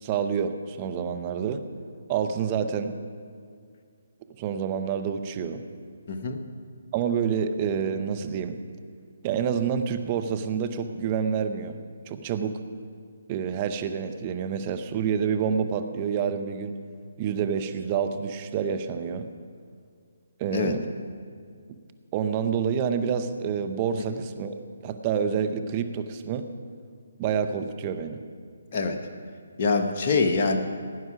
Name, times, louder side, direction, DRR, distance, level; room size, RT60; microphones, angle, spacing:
voice 1, 0.0-1.7 2.1-2.9 4.4-5.6 6.9-8.6 9.2-11.8 12.1-12.6 13.3-16.7 17.2-19.3 20.4-20.8 22.1-26.5 27.2-28.2, right 7 dB, 30° right, 8 dB, 0.8 m, -28 dB
voice 2, 6.1-6.4 20.5-20.8 28.7-29.0 29.6-30.6, left 4 dB, 45° left, 4 dB, 1.1 m, -24 dB
17.0 x 9.5 x 4.8 m, 2.2 s
figure-of-eight pair, 145°, 0 cm